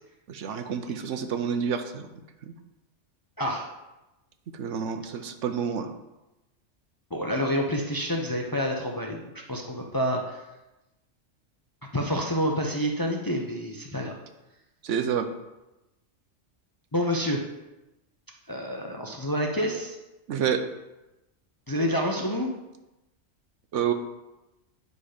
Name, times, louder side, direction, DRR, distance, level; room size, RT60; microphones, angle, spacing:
voice 1, 0.3-2.1 4.6-5.9 14.8-15.3 20.3-20.6 23.7-23.9, right 7 dB, 70° right, 8 dB, 1.0 m, -28 dB
voice 2, 3.4-3.7 7.1-10.4 11.9-14.2 16.9-17.4 18.5-20.0 21.7-22.5, equal, 25° left, 1 dB, 0.6 m, -28 dB
9.6 x 4.4 x 5.0 m, 1.0 s
omnidirectional pair, 1.3 m